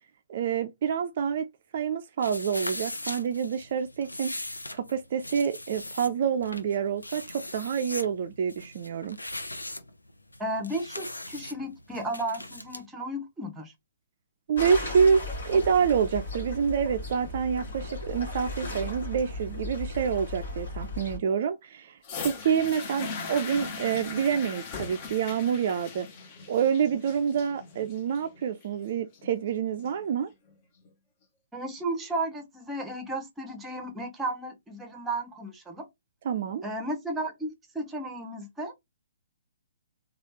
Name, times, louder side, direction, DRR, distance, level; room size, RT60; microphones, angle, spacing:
voice 1, 0.3-1.5 1.7-4.4 4.7-9.2 14.5-26.1 26.5-30.3 36.2-36.6, right 7 dB, 45° right, 0.3 m, -27 dB
sound 1, 2.2-12.8, left 1 dB, 85° left, 0.6 m, -40 dB
voice 2, 10.4-13.7 31.5-35.8 36.6-38.7, right 1 dB, 10° right, 0.8 m, -34 dB
sound 2, 14.6-21.2, left 2 dB, 60° left, 1.4 m, -36 dB
sound 3, 22.0-30.0 30.8-30.9, left 5 dB, 35° left, 0.8 m, -39 dB
3.2 x 2.4 x 3.0 m
figure-of-eight pair, 125°, 0 cm